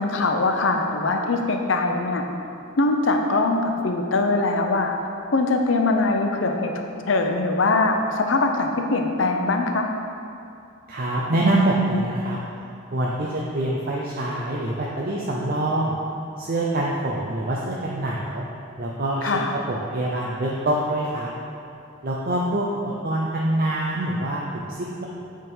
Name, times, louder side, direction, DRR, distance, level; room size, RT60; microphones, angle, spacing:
voice 1, 0.0-2.2 2.8-4.9 5.3-9.9 19.2-19.5, left 3 dB, 65° left, 4 dB, 0.6 m, -22 dB
voice 2, 10.9-12.4 12.9-16.0 16.4-18.4 18.8-19.3 19.7-21.3 22.0-25.1, right 1 dB, 45° right, -4 dB, 0.6 m, -25 dB
8.3 x 3.7 x 5.4 m, 2.6 s
head